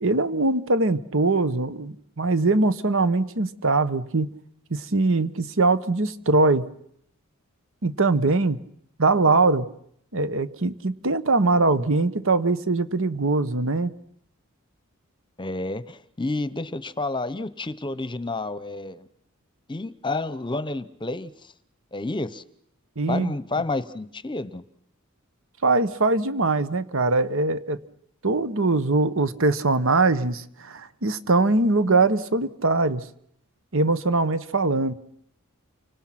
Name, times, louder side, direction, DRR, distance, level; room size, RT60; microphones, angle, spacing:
voice 1, 0.0-4.3 4.7-6.7 7.8-8.6 9.0-9.7 10.1-13.9 23.0-23.3 25.6-27.8 28.2-33.1 33.7-34.9, right 3 dB, 65° right, 13 dB, 1.3 m, -22 dB
voice 2, 15.4-19.1 19.7-21.5 21.9-22.4 23.1-24.6, left 2 dB, 20° left, 15 dB, 0.9 m, -30 dB
29.5 x 25.5 x 6.0 m, 0.69 s
head